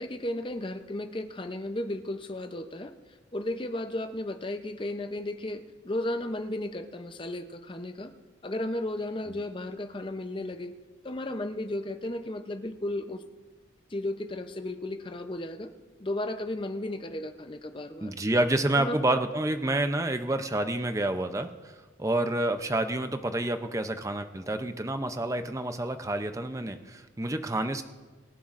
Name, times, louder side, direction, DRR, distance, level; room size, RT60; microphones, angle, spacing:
voice 1, 0.0-2.9 3.3-8.1 8.4-10.7 11.0-13.2 13.9-15.7 16.0-18.1 18.7-19.2, left 1 dB, 25° left, 8 dB, 0.6 m, -34 dB
voice 2, 18.0-27.8, right 1 dB, 15° right, 8 dB, 0.6 m, -29 dB
25.5 x 11.0 x 2.6 m, 1.3 s
head